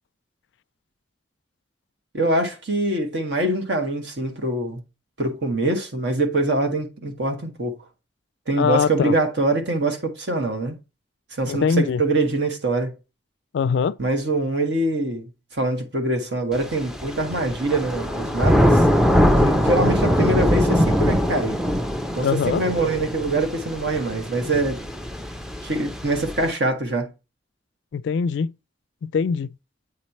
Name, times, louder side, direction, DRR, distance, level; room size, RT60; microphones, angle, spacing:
voice 1, 2.1-4.8 5.2-7.7 8.5-10.8 11.3-12.9 14.0-18.9 19.4-21.6 22.1-24.8 25.6-27.1, right 2 dB, 65° right, 1.5 m, -24 dB
voice 2, 8.6-9.1 11.5-12.0 13.5-14.0 22.2-22.6 27.9-28.5 29.0-29.5, left 6 dB, 70° left, 0.3 m, -22 dB
Thunder / Rain, 16.6-26.5, equal, 5° right, 0.5 m, -22 dB
8.5 x 3.2 x 4.1 m
head